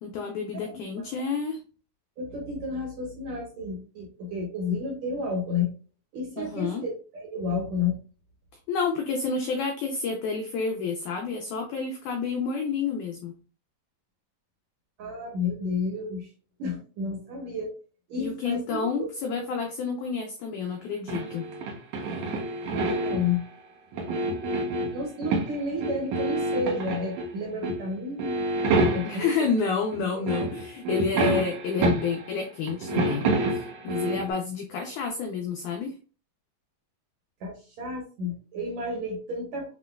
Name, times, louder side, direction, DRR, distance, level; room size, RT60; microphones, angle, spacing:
voice 1, 0.0-1.6 6.4-6.8 8.7-13.3 18.2-21.5 29.0-35.9, left 5 dB, 85° left, 3 dB, 1.7 m, -29 dB
voice 2, 0.5-1.1 2.2-5.7 6.1-8.0 15.0-16.3 16.6-17.8 18.1-19.1 22.7-23.4 24.9-28.5 28.9-29.5 30.1-30.3 37.4-39.8, left 3 dB, 65° right, -2 dB, 1.9 m, -31 dB
sound 1, 21.1-23.4 23.9-25.6 25.8-27.3 27.6-27.9 28.2-29.4 29.9-30.0 30.3-32.4 32.7-34.3, right 2 dB, 85° right, 1.5 m, -28 dB
7.3 x 3.0 x 2.2 m, 0.36 s
omnidirectional pair, 4.2 m